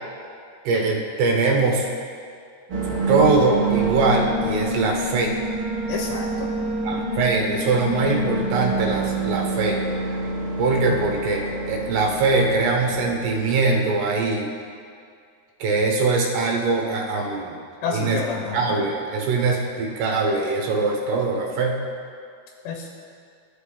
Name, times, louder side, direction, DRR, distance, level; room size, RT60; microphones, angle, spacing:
voice 1, 0.6-1.9 3.1-5.3 6.8-9.8 10.6-14.5 15.6-17.6 17.9-18.2 18.5-21.8, right 3 dB, 75° right, 0 dB, 3.0 m, -22 dB
sound 1, 2.7-14.2, right 2 dB, 45° right, 2.0 m, -27 dB
voice 2, 5.9-6.5 17.8-18.6 22.7-22.9, left 5 dB, 85° left, 1 dB, 2.7 m, -28 dB
14.5 x 5.2 x 3.5 m, 2.3 s
omnidirectional pair, 4.9 m